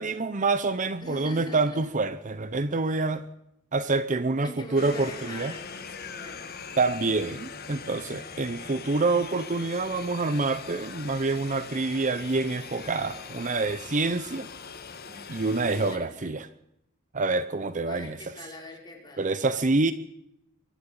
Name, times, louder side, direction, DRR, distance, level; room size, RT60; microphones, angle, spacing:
voice 1, 0.0-3.2 3.7-5.5 6.8-14.5 15.3-16.5 17.1-18.2 19.2-19.9, right 3 dB, 40° right, 13 dB, 0.8 m, -27 dB
voice 2, 1.0-1.8 4.4-6.7 15.0-15.3 15.7-16.3 17.9-19.3, left 1 dB, 20° left, 0 dB, 5.7 m, -43 dB
sound 1, 4.8-16.0, left 5 dB, 50° left, 1.8 m, -41 dB
24.0 x 12.5 x 8.7 m, 0.78 s
head